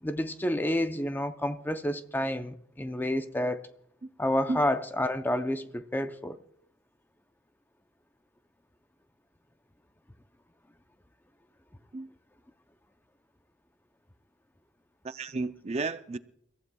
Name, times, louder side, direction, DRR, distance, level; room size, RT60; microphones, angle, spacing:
voice 1, 0.0-3.6 4.2-6.4, left 1 dB, 10° left, 0.6 m, -29 dB
voice 2, 15.0-16.2, right 3 dB, 35° right, 0.5 m, -32 dB
29.5 x 15.0 x 2.3 m
head